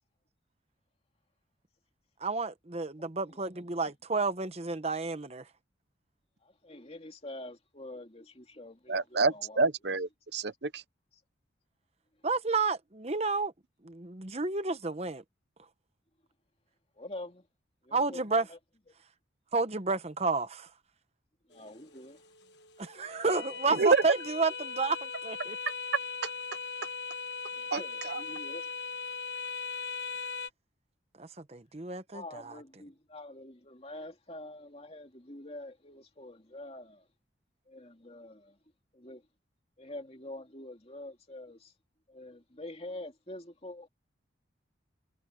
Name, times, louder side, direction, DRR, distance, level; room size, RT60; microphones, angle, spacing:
voice 1, 2.2-5.4 12.2-13.5 13.8-15.2 17.9-18.5 19.5-20.7 22.8-25.6 31.2-32.6, right 3 dB, 35° right, 1.0 m, -31 dB
voice 2, 6.4-9.6 17.0-17.5 17.8-18.6 21.5-22.2 27.5-28.7 32.1-37.0 37.7-38.6 38.9-39.2 39.8-41.7 42.1-43.9, left 1 dB, 30° left, 2.7 m, -46 dB
voice 3, 8.9-10.8 23.7-24.0 26.2-26.3 27.7-28.2, right 4 dB, 60° right, 0.9 m, -28 dB
sound 1, 21.5-30.5, left 5 dB, 60° left, 1.2 m, -39 dB
head